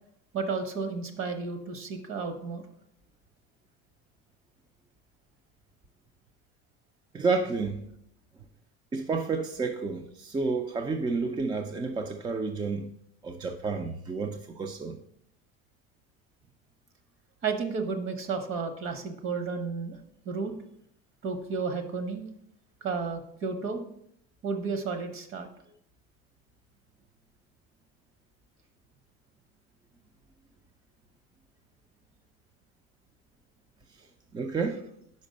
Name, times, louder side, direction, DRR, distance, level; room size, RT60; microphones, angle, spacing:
voice 1, 0.3-2.6 17.4-20.0 20.2-20.5 21.2-22.3 22.8-23.8 24.4-25.5, right 4 dB, 45° right, 1.0 m, -32 dB
voice 2, 7.1-7.9 8.9-12.9 13.2-15.0 34.3-34.8, right 4 dB, 15° right, 0.3 m, -30 dB
5.2 x 4.9 x 5.1 m
cardioid pair, 130°, 31 cm